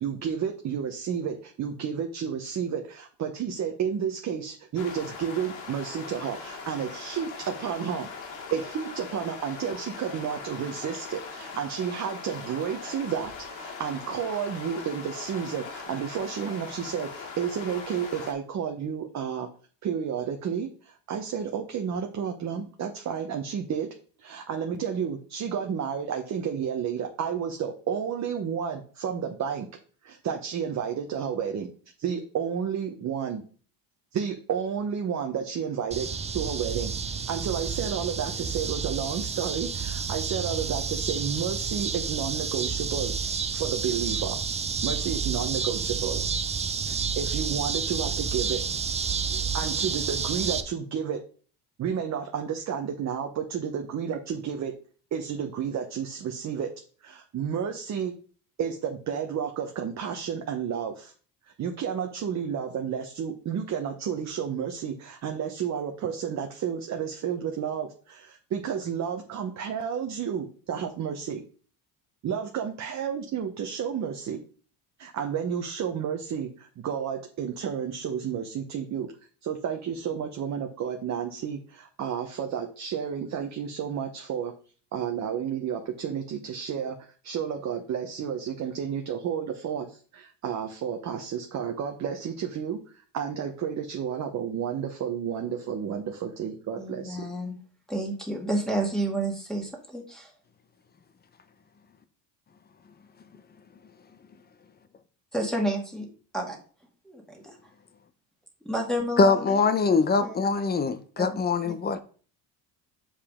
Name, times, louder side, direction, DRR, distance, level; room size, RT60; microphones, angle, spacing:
voice 1, 0.0-8.1 8.5-19.5 19.8-29.7 30.0-31.7 32.0-33.4 34.1-43.1 43.5-44.4 44.8-46.2 46.8-48.6 49.3-51.2 51.8-54.7 55.1-56.7 57.0-58.1 58.6-61.1 61.5-71.4 72.2-74.4 75.0-79.1 79.4-84.5 84.9-92.8 93.1-97.3, right 7 dB, 40° right, 0.9 m, -31 dB
sound 1, 4.7-18.3, left 5 dB, 90° left, 2.2 m, -40 dB
sound 2, 35.9-50.6, right 6 dB, 15° right, 0.4 m, -30 dB
voice 2, 96.8-97.6 97.9-100.3 105.3-106.1 106.3-106.6 107.0-107.6 108.6-109.6 109.9-110.4 111.2-111.4 111.6-111.7, right 1 dB, ahead, 1.8 m, -31 dB
voice 3, 109.2-112.0, left 4 dB, 20° left, 0.6 m, -23 dB
6.9 x 4.9 x 3.6 m
cardioid pair, 115°, 43 cm